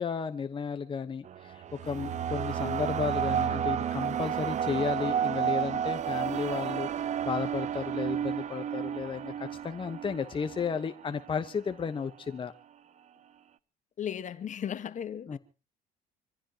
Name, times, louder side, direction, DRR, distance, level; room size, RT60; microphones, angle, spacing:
voice 1, 0.0-12.5 15.3-15.4, left 6 dB, 30° left, 1.1 m, -33 dB
sound 1, 1.2-11.5, right 9 dB, 45° right, 0.7 m, -32 dB
voice 2, 14.0-15.4, left 9 dB, 45° left, 1.4 m, -36 dB
26.0 x 15.5 x 2.9 m
cardioid pair, 110°, 17 cm